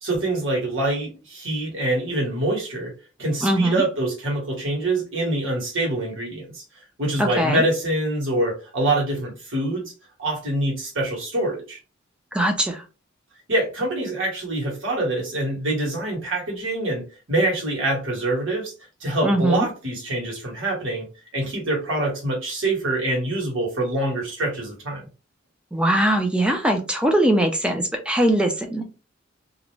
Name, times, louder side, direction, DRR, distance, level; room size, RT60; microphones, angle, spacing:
voice 1, 0.0-2.9 3.2-6.6 7.0-9.8 10.2-11.8 13.5-18.7 19.0-21.1 21.3-25.0, right 1 dB, 75° right, 1.2 m, -25 dB
voice 2, 3.4-3.8 7.2-7.7 12.3-12.8 19.2-19.7 25.7-29.0, right 1 dB, 5° right, 0.4 m, -21 dB
2.4 x 2.1 x 3.1 m
head